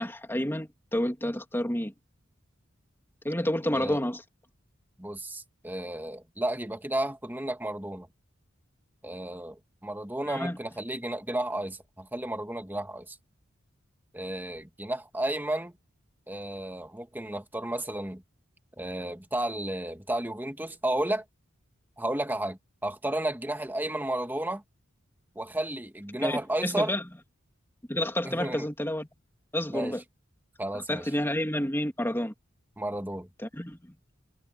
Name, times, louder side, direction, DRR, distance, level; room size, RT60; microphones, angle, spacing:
voice 1, 0.0-1.9 3.2-4.2 10.2-10.6 26.2-27.0 27.9-29.1 29.5-30.0 30.7-32.3 33.4-33.8, left 1 dB, 10° left, 3.0 m, -29 dB
voice 2, 5.0-8.1 9.0-13.2 14.1-15.7 16.3-18.2 18.8-21.2 22.0-24.6 25.4-27.0 28.2-28.7 29.7-30.0 30.6-31.1 32.8-33.3, right 1 dB, 10° right, 2.0 m, -32 dB
head